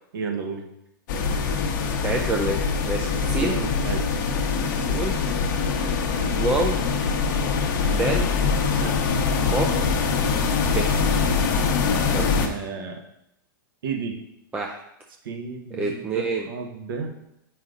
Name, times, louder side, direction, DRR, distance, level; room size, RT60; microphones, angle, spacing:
voice 1, 0.1-0.6 3.4-4.1 8.8-9.0 12.4-13.0 13.8-14.2 15.2-17.2, right 5 dB, 75° right, 4 dB, 1.1 m, -32 dB
sound 1, 1.1-12.5, left 5 dB, 60° left, 1.0 m, -23 dB
voice 2, 1.8-3.5 4.9-5.2 6.3-6.8 7.9-8.3 9.5-9.8 10.6-10.9 12.1-12.3 14.5-14.8 15.7-16.5, right 3 dB, 10° right, 1 dB, 0.4 m, -27 dB
7.8 x 5.7 x 2.5 m, 0.82 s
hypercardioid pair, 145°, 12 cm